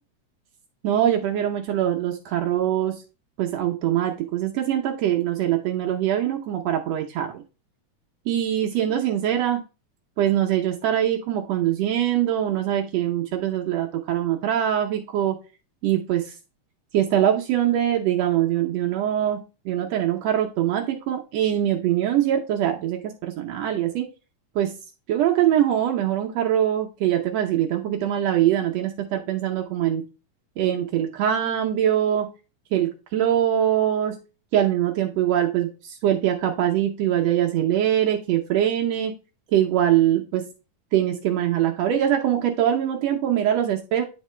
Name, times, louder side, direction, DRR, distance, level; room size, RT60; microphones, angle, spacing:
voice 1, 0.8-3.0 3.4-7.4 8.3-9.6 10.2-15.3 15.8-16.3 16.9-24.1 24.5-24.7 25.1-30.0 30.6-32.3 32.7-34.2 34.5-39.1 39.5-40.5 40.9-44.0, right 11 dB, 80° right, 2 dB, 1.4 m, -23 dB
9.7 x 3.7 x 3.2 m, 0.31 s
omnidirectional pair, 3.7 m